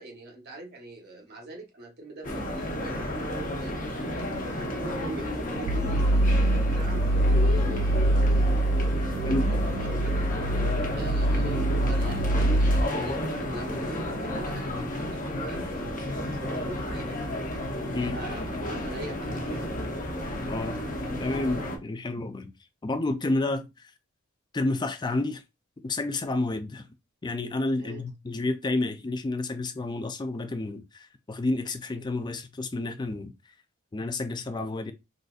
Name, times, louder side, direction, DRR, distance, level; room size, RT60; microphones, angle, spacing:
voice 1, 0.0-8.4 9.2-10.1 10.9-17.3 18.1-19.7 27.8-28.0, right 2 dB, 50° right, 1.0 m, -43 dB
sound 1, 2.2-21.8, left 1 dB, 40° left, 0.8 m, -32 dB
sound 2, 5.7-12.8, right 1 dB, 70° right, 0.3 m, -24 dB
voice 2, 20.5-20.8 21.2-22.5 22.8-23.7 24.5-25.4 25.8-26.9 27.2-33.3 33.9-34.9, left 2 dB, 20° left, 0.4 m, -30 dB
3.9 x 2.5 x 2.4 m
head